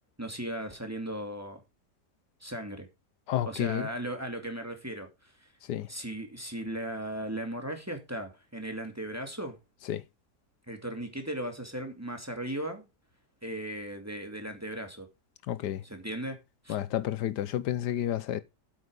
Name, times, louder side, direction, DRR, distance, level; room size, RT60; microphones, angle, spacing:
voice 1, 0.2-1.6 2.4-2.9 3.5-5.5 5.9-9.6 10.7-12.9 13.4-15.1 15.8-16.4 16.6-16.8, right 1 dB, 10° right, 2.2 m, -37 dB
voice 2, 3.3-3.9 5.6-5.9 9.9-10.0 15.5-15.8 16.7-18.4, left 11 dB, 80° left, 1.3 m, -31 dB
8.5 x 8.4 x 5.1 m
omnidirectional pair, 1.8 m